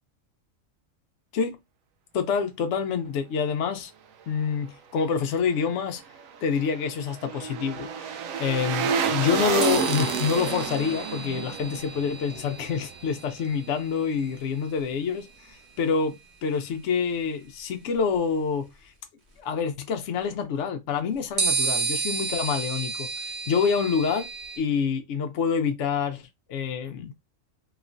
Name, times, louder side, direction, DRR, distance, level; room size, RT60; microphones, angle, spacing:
voice 1, 2.1-3.9 4.3-6.0 6.4-18.9 19.4-24.3 24.6-27.1, left 6 dB, 70° left, 0.8 m, -27 dB
sound 1, 6.1-13.3 13.6-13.7, right 6 dB, 80° right, 1.0 m, -30 dB
sound 2, 9.6-15.2 16.5-16.6 21.4-24.6, right 4 dB, 55° right, 1.4 m, -32 dB
3.1 x 3.0 x 2.5 m
omnidirectional pair, 1.4 m